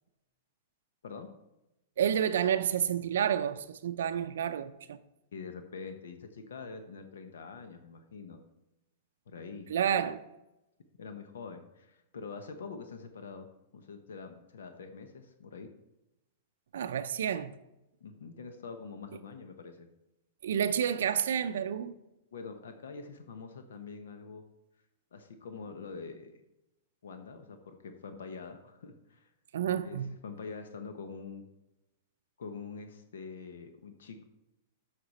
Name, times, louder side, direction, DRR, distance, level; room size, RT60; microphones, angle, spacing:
voice 1, 2.0-5.0 9.7-10.2 16.7-17.5 20.4-21.9 29.5-30.1, right 9 dB, 80° right, 0.4 m, -30 dB
voice 2, 5.3-8.4 9.3-10.0 11.0-13.5 13.7-15.7 18.0-19.9 22.3-24.4 25.1-26.4 27.0-29.3 29.8-31.4 32.4-34.2, left 5 dB, 90° left, 0.8 m, -45 dB
7.8 x 5.9 x 4.1 m
hypercardioid pair, 150°, 0 cm